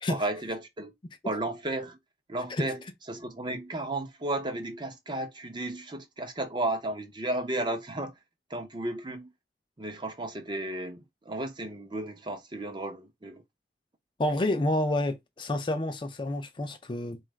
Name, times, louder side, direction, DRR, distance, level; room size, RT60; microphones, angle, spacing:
voice 1, 0.1-0.9 1.2-2.0 2.3-8.1 8.5-9.3 9.8-13.4, right 2 dB, 25° right, 0.7 m, -34 dB
voice 2, 14.2-17.2, left 1 dB, 30° left, 0.4 m, -29 dB
4.2 x 2.4 x 3.1 m
head